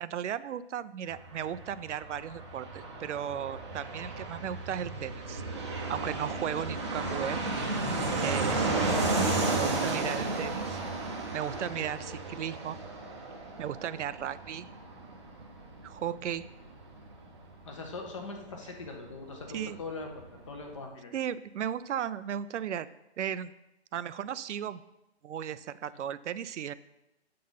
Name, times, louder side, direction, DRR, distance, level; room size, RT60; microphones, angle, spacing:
voice 1, 0.0-5.4 5.9-7.4 8.2-8.7 9.5-10.8 11.3-12.8 13.6-14.7 15.8-16.4 19.5-19.8 21.1-22.9 23.2-23.5 23.9-24.8 25.2-26.7, right 9 dB, 90° right, 15 dB, 0.5 m, -35 dB
Fixed-wing aircraft airplane, 1.1-19.5 19.7-19.8 20.0-20.7, right 3 dB, 25° right, 0.7 m, -33 dB
voice 2, 17.6-20.1 20.5-21.1, left 3 dB, 25° left, 2 dB, 0.9 m, -41 dB
7.6 x 3.8 x 5.6 m, 0.92 s
hypercardioid pair, 170°, 34 cm